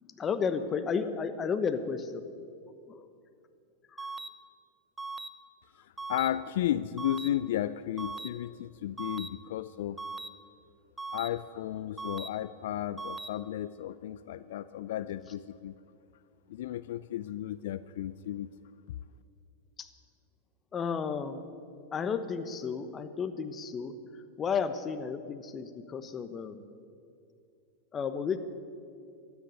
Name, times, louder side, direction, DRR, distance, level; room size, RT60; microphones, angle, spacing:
voice 1, 0.0-2.2 2.9-3.1 3.9-4.1 19.8-19.9 20.7-21.4 21.9-23.9 24.4-26.7 27.9-28.4, left 6 dB, 25° left, 10 dB, 1.0 m, -33 dB
sound 1, 4.0-4.3 5.0-5.3 6.0-6.3 7.0-7.3 8.0-8.3 9.0-9.3 10.0-10.3 11.0-11.3 12.0-12.3 13.0-13.3, right 3 dB, 15° right, 0.6 m, -39 dB
voice 2, 5.8-10.0 11.1-15.8 16.5-18.5, left 12 dB, 70° left, 15 dB, 0.4 m, -34 dB
13.0 x 9.8 x 9.6 m, 2.4 s
hypercardioid pair, 115°, 0 cm